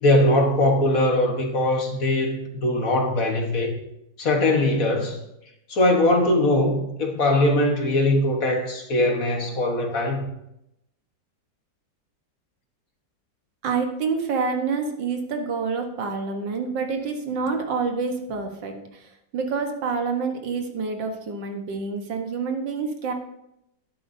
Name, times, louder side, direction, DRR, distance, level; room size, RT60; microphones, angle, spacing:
voice 1, 0.0-3.7 4.2-5.2 5.7-10.2, left 1 dB, 50° left, 2 dB, 1.6 m, -21 dB
voice 2, 13.6-18.8 19.3-23.1, right 5 dB, 80° right, 4 dB, 1.9 m, -27 dB
12.0 x 10.5 x 2.7 m, 0.83 s
omnidirectional pair, 1.9 m